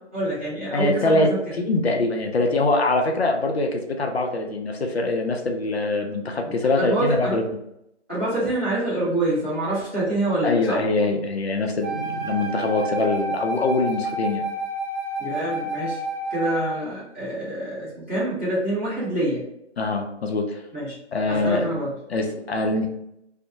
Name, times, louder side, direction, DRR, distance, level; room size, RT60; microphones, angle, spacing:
voice 1, 0.1-1.4 6.4-7.4 8.1-10.8 15.2-16.0 16.3-19.4 20.7-21.0 21.3-21.9, right 1 dB, 10° right, -13 dB, 0.6 m, -26 dB
voice 2, 0.7-1.3 1.6-7.4 10.4-14.4 19.8-20.6 21.1-21.8 22.1-22.9, left 2 dB, 60° left, 3 dB, 0.5 m, -23 dB
Wind instrument woodwind instrument, 11.8-16.9, right 1 dB, 50° right, 1.3 m, -29 dB
2.7 x 2.0 x 2.5 m, 0.79 s
figure-of-eight pair, 155°, 36 cm